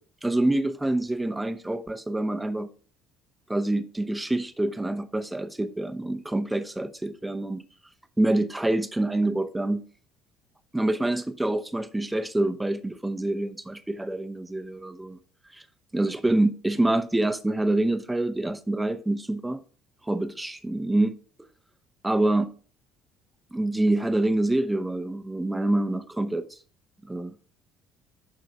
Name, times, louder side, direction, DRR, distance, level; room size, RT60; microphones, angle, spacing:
voice 1, 0.2-2.7 3.5-7.6 8.2-9.8 10.7-15.2 15.5-15.6 15.9-19.6 20.0-21.2 22.0-22.5 23.5-26.6 27.1-27.3, right 1 dB, 10° right, 0.9 m, -26 dB
11.0 x 3.8 x 4.7 m
hypercardioid pair, 55°, 0 cm